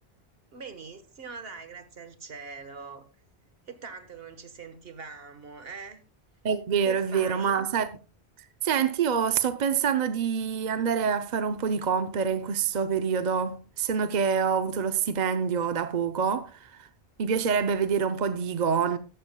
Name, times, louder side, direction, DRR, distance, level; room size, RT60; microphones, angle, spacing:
voice 1, 0.5-3.0 3.7-6.0 6.8-7.6, right 5 dB, 65° right, 1.5 m, -42 dB
voice 2, 6.4-8.0 8.6-16.9 17.2-19.0, right 6 dB, 50° right, 0.7 m, -26 dB
14.5 x 12.0 x 2.2 m
omnidirectional pair, 1.1 m